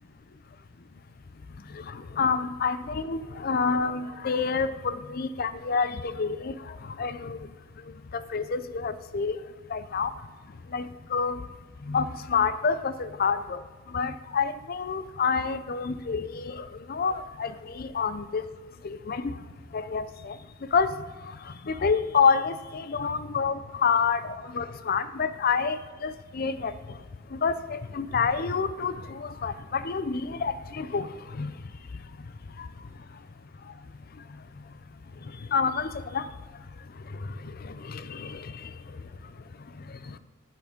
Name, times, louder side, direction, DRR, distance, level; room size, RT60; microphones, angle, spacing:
voice 1, 1.7-6.5 7.0-7.4 8.1-9.4 9.7-10.1 10.7-10.9 11.1-11.4 11.9-13.6 13.9-18.4 18.8-19.4 19.7-20.3 20.7-20.9 21.7-26.7 27.3-31.1 31.4-31.5 32.6-32.7 35.5-36.3 37.6-38.5, left 5 dB, 50° left, 13 dB, 0.5 m, -28 dB
10.5 x 7.5 x 5.2 m, 1.4 s
head